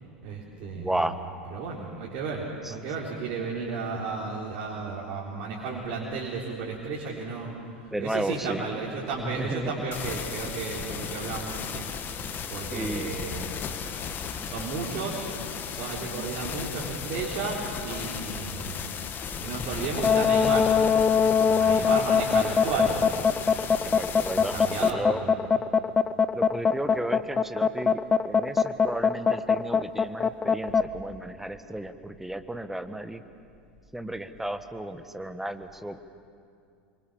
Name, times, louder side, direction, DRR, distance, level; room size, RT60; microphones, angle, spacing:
voice 1, 0.2-1.1 1.5-7.5 7.8-11.8 12.5-13.5 14.4-15.3 15.6-19.0 19.4-20.7 21.4-23.1 24.3-25.5, right 4 dB, 50° right, -4 dB, 3.9 m, -33 dB
voice 2, 0.8-1.2 2.6-2.7 7.9-8.6 9.2-9.7 12.7-13.1 16.0-16.4 21.7-21.9 23.8-25.2 26.3-28.0 28.2-33.2 33.9-36.0, right 1 dB, 5° right, 9 dB, 1.4 m, -34 dB
sound 1, 9.9-24.9, left 7 dB, 35° left, 1.6 m, -35 dB
sound 2, 20.0-30.9, left 6 dB, 20° left, 0.7 m, -22 dB
26.5 x 24.0 x 7.2 m, 2.4 s
figure-of-eight pair, 80°, 6 cm